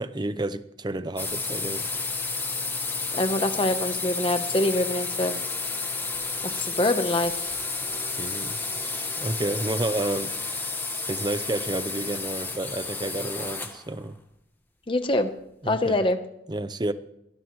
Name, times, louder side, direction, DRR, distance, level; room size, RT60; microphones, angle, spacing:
voice 1, 0.0-1.9 6.5-6.7 8.2-10.8 11.1-14.2 15.6-16.0 16.5-16.9, right 1 dB, 25° right, 13 dB, 0.7 m, -31 dB
sound 1, 1.2-13.9, left 3 dB, 10° left, 1.4 m, -31 dB
voice 2, 3.1-5.4 6.4-7.6 14.9-15.3 15.6-16.2, left 1 dB, 30° left, 8 dB, 0.9 m, -25 dB
21.5 x 18.0 x 3.1 m, 0.81 s
head